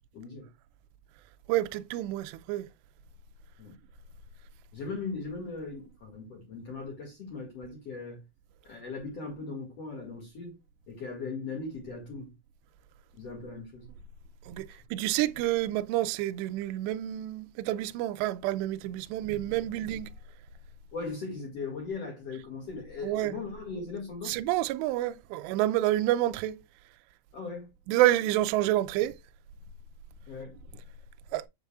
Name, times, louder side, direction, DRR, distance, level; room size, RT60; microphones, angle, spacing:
voice 1, 0.1-0.5 3.6-3.8 4.7-8.2 8.6-10.6 10.9-12.3 13.1-13.9 14.7-14.8 20.9-24.3 27.3-27.7 30.3-30.5, left 4 dB, 50° left, 2.1 m, -39 dB
voice 2, 1.5-2.7 14.5-20.1 23.0-23.3 24.3-26.5 27.9-29.2 31.3-31.4, right 14 dB, 90° right, 2.4 m, -28 dB
7.9 x 6.7 x 2.3 m
omnidirectional pair, 5.5 m